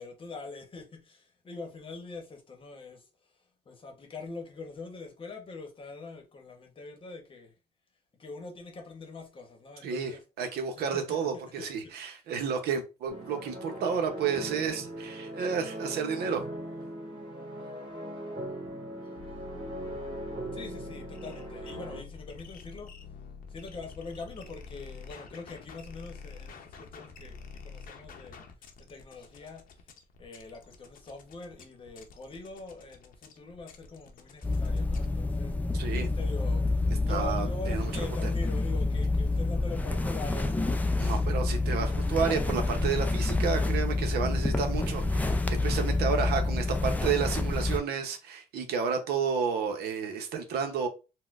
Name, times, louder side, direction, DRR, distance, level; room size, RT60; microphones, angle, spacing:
voice 1, 0.0-3.1 3.7-7.5 8.2-10.2 10.8-11.9 20.5-22.9 23.5-28.4 28.8-29.8 30.2-35.5 36.1-41.2, left 3 dB, 30° left, 0.9 m, -44 dB
voice 2, 9.8-16.4 35.7-36.1 37.1-38.3 41.0-50.9, right 6 dB, 70° right, 0.8 m, -31 dB
sound 1, 13.1-22.0, right 1 dB, 30° right, 1.9 m, -40 dB
sound 2, 19.2-35.1, left 5 dB, 55° left, 0.7 m, -48 dB
sound 3, 34.4-47.8, left 2 dB, 10° left, 0.4 m, -28 dB
4.1 x 2.1 x 2.4 m
cardioid pair, 110°, 17 cm